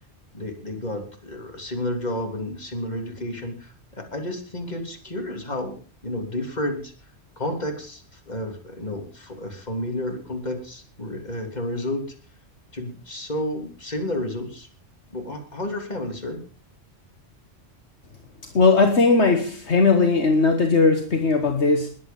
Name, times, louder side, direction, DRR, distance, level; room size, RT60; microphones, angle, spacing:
voice 1, 0.3-6.9 7.4-12.1 12.7-14.7 15.1-16.4, left 1 dB, 35° left, 4 dB, 3.4 m, -31 dB
voice 2, 18.5-21.9, left 4 dB, 65° left, 5 dB, 1.8 m, -18 dB
21.0 x 8.5 x 5.4 m, 0.38 s
omnidirectional pair, 1.2 m